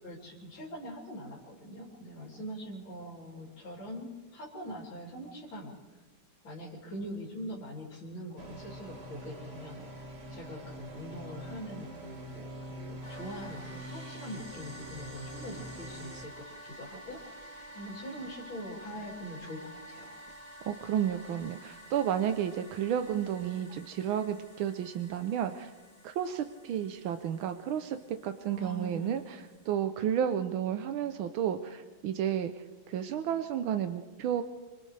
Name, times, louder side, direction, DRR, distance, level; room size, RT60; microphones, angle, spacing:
voice 1, 0.0-6.1 6.4-20.2 28.5-29.2, equal, 75° left, -5 dB, 4.3 m, -43 dB
sound 1, 8.4-16.3, right 1 dB, 30° right, 2.1 m, -45 dB
sound 2, 13.0-29.7, equal, 20° left, 2.7 m, -50 dB
voice 2, 20.7-25.7 26.0-34.4, right 9 dB, 90° right, 8 dB, 1.6 m, -32 dB
29.5 x 26.0 x 3.4 m, 1.3 s
omnidirectional pair, 2.2 m